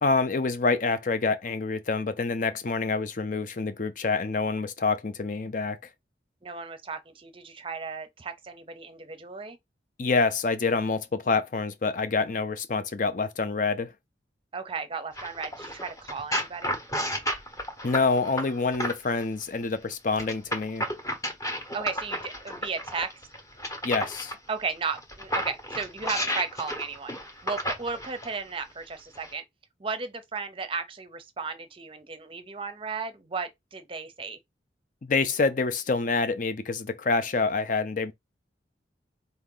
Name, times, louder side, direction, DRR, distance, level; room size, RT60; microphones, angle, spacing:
voice 1, 0.0-5.8 10.0-13.9 17.8-20.9 23.8-24.3 35.0-38.1, left 4 dB, 45° left, 0.6 m, -27 dB
voice 2, 6.4-9.6 14.5-16.7 21.7-23.1 24.5-29.4 29.8-34.4, right 5 dB, 30° right, 0.6 m, -35 dB
sound 1, 15.2-19.2 20.2-24.4 24.9-28.3 29.1-29.3, equal, 20° left, 0.9 m, -32 dB
4.1 x 2.8 x 3.7 m
head